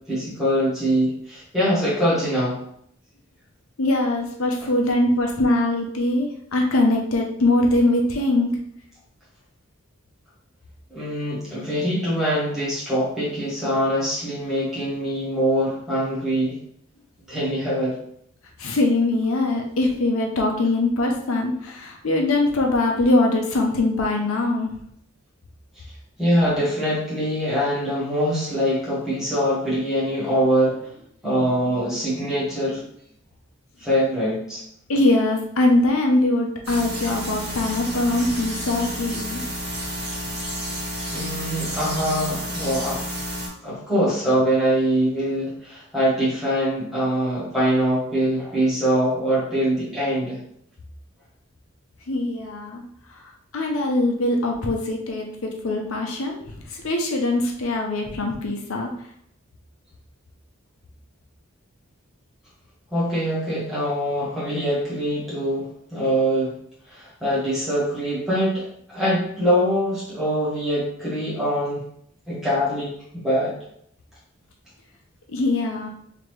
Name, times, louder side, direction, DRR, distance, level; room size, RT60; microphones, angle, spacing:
voice 1, 0.1-2.6 10.9-16.6 17.3-18.0 26.2-30.9 31.2-32.9 33.8-34.6 41.1-43.0 43.6-50.4 62.9-66.6 66.9-71.8 72.3-73.5, equal, ahead, -9 dB, 1.5 m, -23 dB
voice 2, 3.8-8.5 18.6-24.7 34.9-39.4 52.1-52.8 53.5-58.9 75.3-75.9, left 2 dB, 85° left, 2 dB, 0.7 m, -22 dB
sound 1, 36.6-43.5, equal, 50° right, 1.3 m, -30 dB
3.8 x 2.9 x 3.2 m, 0.68 s
head